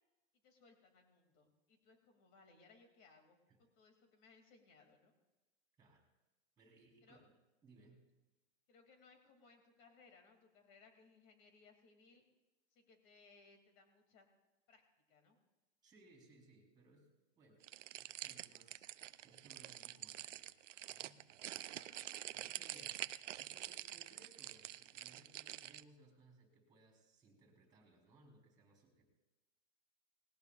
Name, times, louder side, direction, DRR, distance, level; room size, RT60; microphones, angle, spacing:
voice 1, 0.4-5.1 7.0-7.2 8.7-12.2 12.7-14.3 14.7-14.8 15.1-15.4 21.7-22.3 22.5-22.9, left 4 dB, 35° left, 4 dB, 2.7 m, -66 dB
voice 2, 5.8-6.1 6.6-7.2 7.6-8.0 15.8-17.1 17.4-17.6 18.0-20.5 20.9-21.7 22.3-23.1 23.4-29.1, right 2 dB, 10° right, 2 dB, 3.8 m, -66 dB
sound 1, 17.6-25.8, right 13 dB, 80° right, 0.6 m, -47 dB
19.5 x 17.0 x 2.5 m, 1.1 s
hypercardioid pair, 145°, 37 cm